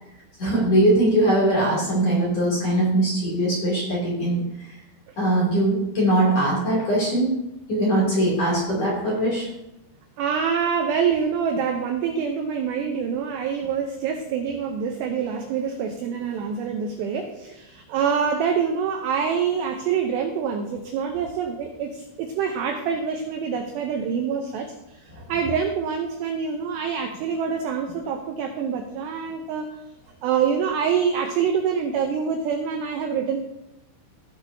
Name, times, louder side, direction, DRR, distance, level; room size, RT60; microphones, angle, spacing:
voice 1, 0.4-4.4 5.2-7.3 7.7-9.5, right 1 dB, 35° left, -5 dB, 3.1 m, -21 dB
voice 2, 10.2-25.0 25.3-29.7 30.2-33.4, right 7 dB, 85° right, 4 dB, 2.4 m, -26 dB
16.0 x 8.3 x 2.8 m, 0.87 s
omnidirectional pair, 5.9 m